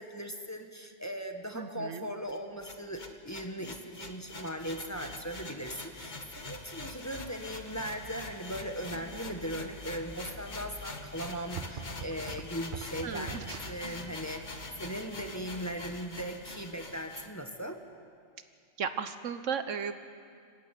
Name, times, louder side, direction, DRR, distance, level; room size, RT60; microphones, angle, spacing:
voice 1, 0.0-17.8, equal, 15° left, 4 dB, 1.4 m, -39 dB
voice 2, 1.5-2.0 13.0-13.6 18.8-19.9, right 6 dB, 75° right, 10 dB, 1.3 m, -35 dB
sound 1, 2.3-17.3, left 3 dB, 35° left, 1.5 m, -44 dB
sound 2, 10.3-10.4 11.1-11.2 11.6-13.7, right 7 dB, 45° right, 0.8 m, -43 dB
26.5 x 15.0 x 9.1 m, 2.2 s
omnidirectional pair, 1.3 m